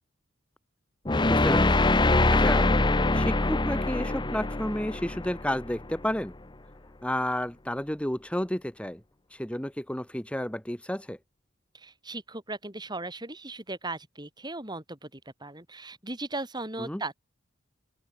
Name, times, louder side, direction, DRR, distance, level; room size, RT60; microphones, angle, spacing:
sound 1, 1.0-6.1, left 2 dB, 20° left, 0.9 m, -24 dB
voice 1, 1.3-1.9 2.3-6.3 7.0-9.0 9.3-11.2 16.8-17.0, left 1 dB, 5° left, 1.3 m, -31 dB
voice 2, 11.7-17.2, right 2 dB, 20° right, 6.4 m, -37 dB
open air
head